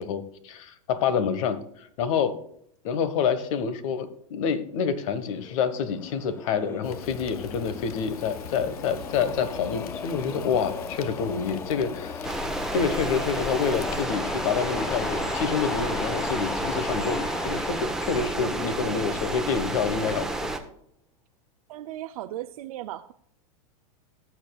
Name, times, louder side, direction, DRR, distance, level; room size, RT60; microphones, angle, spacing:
voice 1, 0.0-1.6 2.0-2.4 2.8-12.4 12.7-20.3, left 6 dB, 60° left, 12 dB, 1.4 m, -27 dB
sound 1, 5.3-19.6, left 5 dB, 15° left, 0.3 m, -37 dB
Fire, 6.8-14.0, left 6 dB, 85° left, 1.0 m, -41 dB
sound 2, 12.2-20.6, right 2 dB, 5° right, 1.1 m, -30 dB
voice 2, 21.7-23.1, right 14 dB, 70° right, 8 dB, 0.6 m, -36 dB
18.0 x 7.2 x 2.4 m, 0.71 s
hypercardioid pair, 125°, 19 cm